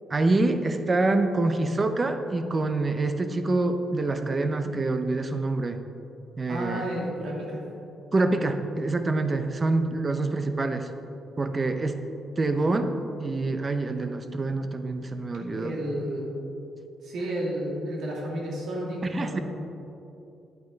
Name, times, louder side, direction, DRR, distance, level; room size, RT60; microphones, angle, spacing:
voice 1, 0.1-5.8 6.4-6.8 8.1-10.9 11.4-12.0 12.4-12.9 13.2-15.8 19.0-19.4, right 2 dB, 25° right, 8 dB, 0.6 m, -26 dB
voice 2, 6.5-7.6 15.4-16.2 17.0-19.4, right 1 dB, 75° right, -2 dB, 2.4 m, -32 dB
10.5 x 8.6 x 4.0 m, 2.8 s
cardioid pair, 125°, 0 cm